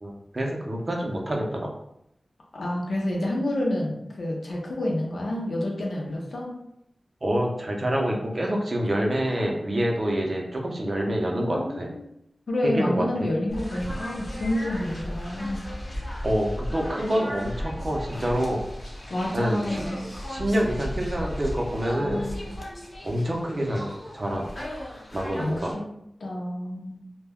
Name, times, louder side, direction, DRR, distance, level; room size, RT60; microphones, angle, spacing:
voice 1, 0.0-1.7 7.2-11.9 12.6-13.0 16.2-18.6 19.3-19.6 20.3-22.2 23.0-24.5 25.1-25.7, equal, 50° right, 0 dB, 0.6 m, -27 dB
voice 2, 2.5-6.5 9.2-9.5 11.3-12.0 12.5-15.6 19.1-20.1 22.0-22.6 25.3-25.8 26.2-27.0, left 1 dB, 85° left, -2 dB, 0.6 m, -29 dB
sound 1, 13.5-25.7, equal, 45° left, 0.8 m, -35 dB
2.2 x 2.1 x 3.5 m, 0.79 s
cardioid pair, 50°, 0 cm